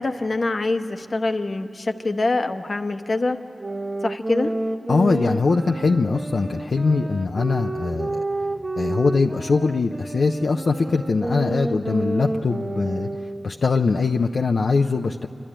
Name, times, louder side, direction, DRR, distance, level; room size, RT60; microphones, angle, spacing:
voice 1, 0.0-3.4 4.0-4.5, left 2 dB, 65° left, 7 dB, 0.9 m, -24 dB
sound 1, 3.6-13.6, right 2 dB, 40° right, 0.9 m, -29 dB
voice 2, 4.9-8.2 8.8-15.3, left 4 dB, 85° left, 3 dB, 0.5 m, -22 dB
27.5 x 12.5 x 10.0 m, 2.8 s
cardioid pair, 45°, 0 cm